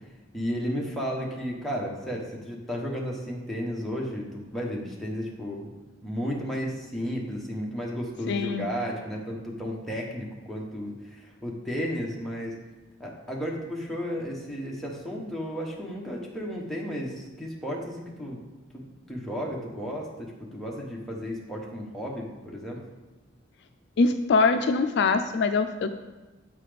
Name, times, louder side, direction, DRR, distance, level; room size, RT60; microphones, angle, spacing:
voice 1, 0.3-5.7 6.0-12.6 13.0-18.4 18.7-22.8, equal, ahead, -3 dB, 1.1 m, -33 dB
voice 2, 8.3-8.7 24.0-26.0, left 4 dB, 60° left, 8 dB, 0.4 m, -23 dB
8.3 x 4.1 x 5.0 m, 1.2 s
head